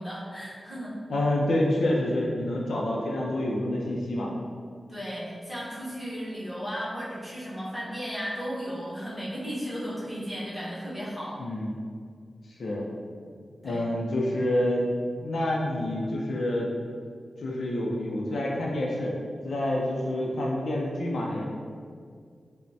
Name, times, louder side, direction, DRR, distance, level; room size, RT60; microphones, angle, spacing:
voice 1, 0.0-1.0 4.9-11.4 13.6-13.8, equal, ahead, -9 dB, 1.0 m, -35 dB
voice 2, 1.1-4.3 11.4-11.7 12.6-12.9 13.6-14.9 15.2-16.7 17.4-19.1 19.4-21.4, left 1 dB, 70° left, -2 dB, 0.5 m, -27 dB
5.3 x 2.1 x 2.7 m, 2.1 s
wide cardioid pair, 165°, 0 cm